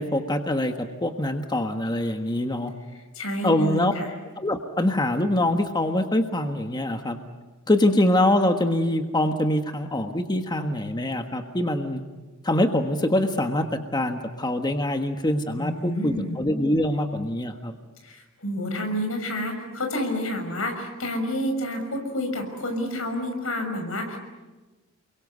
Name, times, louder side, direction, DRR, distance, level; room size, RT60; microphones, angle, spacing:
voice 1, 0.0-2.7 3.4-3.9 4.4-7.2 7.7-12.0 12.4-17.7, left 1 dB, 20° left, 5 dB, 1.5 m, -24 dB
voice 2, 3.1-4.1 15.5-16.4 18.0-24.2, left 1 dB, 90° left, 5 dB, 6.2 m, -29 dB
29.5 x 23.0 x 8.2 m, 1.2 s
head